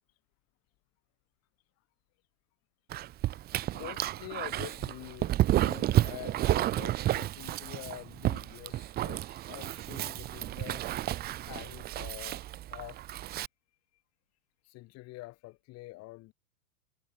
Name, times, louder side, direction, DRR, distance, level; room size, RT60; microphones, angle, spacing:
Dog, 2.9-13.5, right 14 dB, 20° right, 1.0 m, -31 dB
voice 1, 3.7-10.8 11.4-13.1 14.6-16.3, left 20 dB, 35° left, 3.8 m, -46 dB
hypercardioid pair, 140°, 44 cm